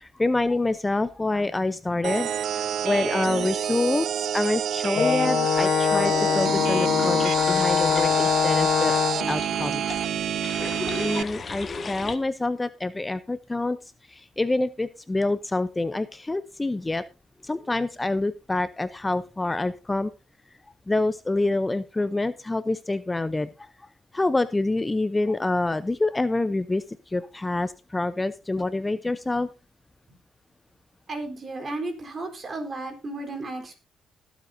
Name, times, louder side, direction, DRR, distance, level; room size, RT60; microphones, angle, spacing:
voice 1, 0.0-9.0 9.3-9.8 11.0-13.8 14.1-17.0 17.4-20.1 20.9-23.9 24.1-29.5, left 2 dB, 15° left, 13 dB, 0.7 m, -27 dB
sound 1, 2.0-11.2, right 9 dB, 70° right, 0.5 m, -28 dB
Brass instrument, 5.0-9.4, left 9 dB, 65° left, 0.5 m, -23 dB
sound 2, 5.6-12.2, left 4 dB, 40° left, 1.7 m, -37 dB
voice 2, 31.1-33.7, right 2 dB, 40° right, 5 dB, 3.9 m, -34 dB
20.5 x 8.1 x 2.7 m, 0.29 s
cardioid pair, 90°, 0 cm